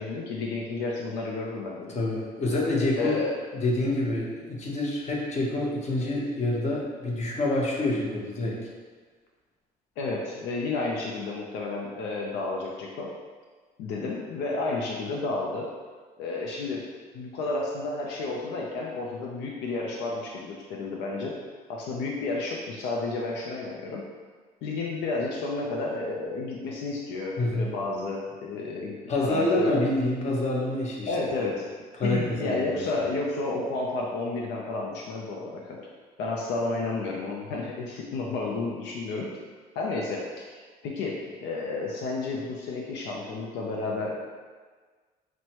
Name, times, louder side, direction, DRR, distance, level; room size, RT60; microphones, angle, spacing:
voice 1, 0.0-2.0 2.9-3.4 10.0-13.1 13.8-15.7 16.2-16.9 17.1-21.3 21.7-24.0 24.6-28.9 29.2-29.9 31.1-31.7 32.0-35.9 36.2-39.3 39.8-44.3, left 3 dB, 85° left, -1 dB, 0.5 m, -31 dB
voice 2, 1.9-3.2 3.5-8.6 27.4-27.7 29.1-31.1 32.0-32.8, left 2 dB, 40° left, -3 dB, 0.9 m, -27 dB
6.0 x 2.1 x 2.9 m, 1.5 s
cardioid pair, 110°, 17 cm